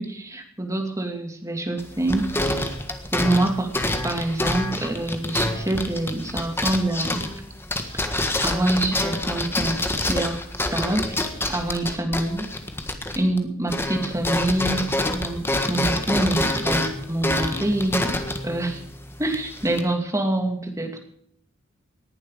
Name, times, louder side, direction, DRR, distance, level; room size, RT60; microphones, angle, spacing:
voice 1, 0.0-2.3 3.1-3.7 4.0-7.2 7.9-10.4 10.7-11.2 11.5-12.5 13.1-18.8 19.2-21.0, right 1 dB, 15° right, 4 dB, 2.5 m, -26 dB
sound 1, 1.8-13.4 13.7-19.8, left 1 dB, 10° left, 1.6 m, -27 dB
19.5 x 11.0 x 5.0 m, 0.67 s
head